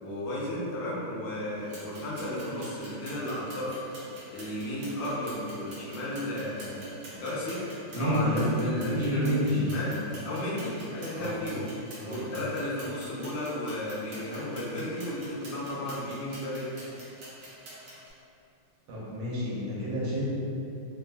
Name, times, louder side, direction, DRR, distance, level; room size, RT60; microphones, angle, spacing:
voice 1, 0.0-3.8 4.3-7.6 7.9-9.9 10.2-11.7 12.0-16.7, left 1 dB, 65° left, -8 dB, 1.2 m, -34 dB
sound 1, 1.6-18.1, right 1 dB, 60° right, 1.1 m, -47 dB
voice 2, 7.9-8.5 8.7-9.6 11.1-11.4 12.0-12.2 18.9-20.3, equal, 75° right, -8 dB, 1.7 m, -29 dB
3.8 x 2.5 x 2.2 m, 2.7 s
omnidirectional pair, 2.4 m